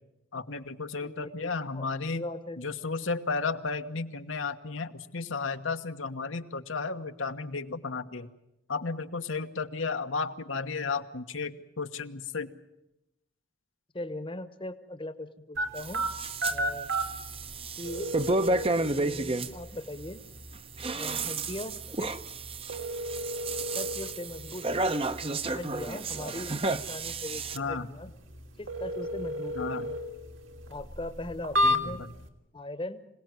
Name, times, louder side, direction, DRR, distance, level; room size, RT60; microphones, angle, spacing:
voice 1, 0.3-2.2 2.6-8.3 8.7-12.5 27.5-27.9 29.5-29.9 31.6-32.1, left 4 dB, 80° left, 7 dB, 1.4 m, -33 dB
voice 2, 1.0-2.6 13.9-16.1 16.5-16.9 17.8-18.1 19.0-20.2 20.9-22.2 23.7-25.1 25.5-28.1 28.6-30.0 30.7-32.0 32.5-33.0, left 1 dB, 25° left, 11 dB, 1.1 m, -40 dB
sound 1, 15.6-32.3, equal, 80° right, 3.0 m, -34 dB
sound 2, 15.8-16.6 16.9-19.5 20.6-27.6, right 2 dB, 30° right, 0.9 m, -32 dB
26.5 x 18.0 x 9.5 m, 0.87 s
head